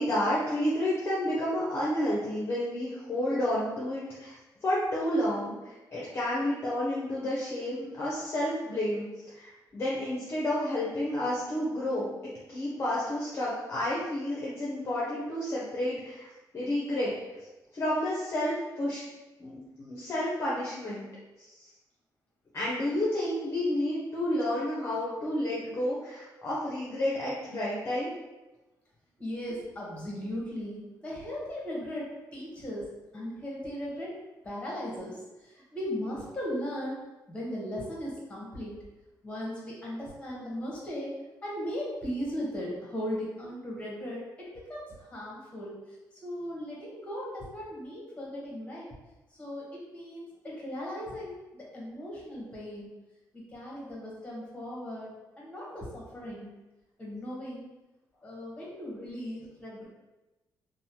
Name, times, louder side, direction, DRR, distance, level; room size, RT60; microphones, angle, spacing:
voice 1, 0.0-4.4 4.6-9.1 9.3-12.1 12.5-16.3 16.5-17.1 17.7-19.0 19.4-21.1 21.6-21.7 22.5-28.1, left 1 dB, 35° left, -6 dB, 0.5 m, -30 dB
voice 2, 29.2-32.9 33.1-34.1 34.4-37.0 37.3-38.8 39.2-45.8 46.2-48.9 49.4-52.9 53.3-55.1 55.4-56.5 57.0-57.7 58.2-59.9, equal, 15° left, -4 dB, 0.9 m, -37 dB
2.9 x 2.0 x 2.7 m, 1.1 s
cardioid pair, 130°, 8 cm